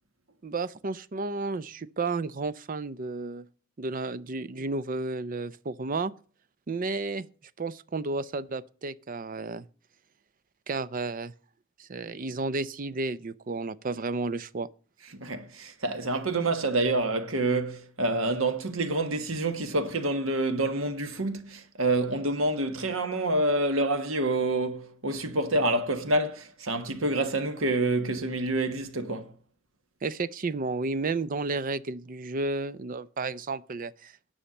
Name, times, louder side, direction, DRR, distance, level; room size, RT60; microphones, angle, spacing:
voice 1, 0.4-3.4 3.8-6.1 6.7-7.3 7.6-9.6 10.7-11.3 11.8-14.7 30.0-34.1, right 3 dB, 40° right, 0.5 m, -32 dB
voice 2, 15.2-29.3, right 2 dB, 75° right, 1.4 m, -27 dB
10.0 x 5.6 x 7.7 m
head